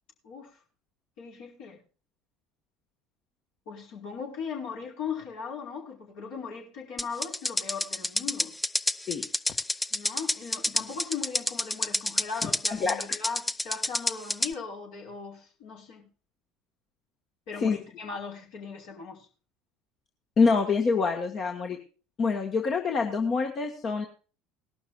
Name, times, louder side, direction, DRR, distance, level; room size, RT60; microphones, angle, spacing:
voice 1, 1.2-1.8 3.7-8.5 9.9-16.1 17.5-19.3, left 5 dB, 60° left, 4.9 m, -38 dB
sound 1, 7.0-14.5, left 1 dB, 10° left, 0.6 m, -29 dB
voice 2, 20.4-21.8 22.2-24.0, left 4 dB, 40° left, 1.7 m, -25 dB
20.0 x 12.0 x 2.5 m
figure-of-eight pair, 65°, 0 cm